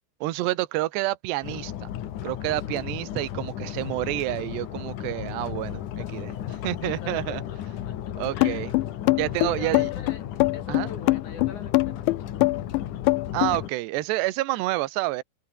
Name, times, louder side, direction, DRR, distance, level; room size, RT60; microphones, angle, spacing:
voice 1, 0.2-1.9 2.2-6.3 6.6-7.4 8.2-8.7 9.2-9.9 10.7-10.9 13.3-15.2, right 18 dB, 75° right, 3.1 m, -28 dB
sound 1, 1.4-13.7, left 11 dB, 60° left, 2.2 m, -34 dB
voice 2, 6.8-7.6 7.9-8.0 8.3-8.7 9.4-10.2 10.5-12.6, left 5 dB, 40° left, 5.4 m, -43 dB
sound 2, 8.4-13.6, left 23 dB, 85° left, 2.7 m, -22 dB
omnidirectional pair, 5.5 m